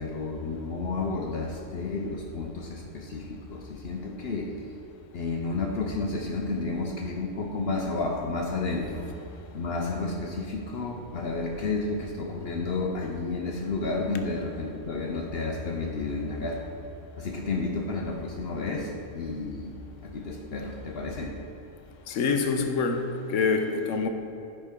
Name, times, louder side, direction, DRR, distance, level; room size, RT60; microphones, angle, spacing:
voice 1, 0.0-4.7 5.1-9.1 9.5-16.8 17.2-19.7 20.0-21.3, left 3 dB, 60° left, 0 dB, 0.8 m, -31 dB
voice 2, 22.1-24.1, left 4 dB, 85° left, 6 dB, 1.0 m, -26 dB
9.9 x 4.4 x 3.7 m, 2.8 s
omnidirectional pair, 1.3 m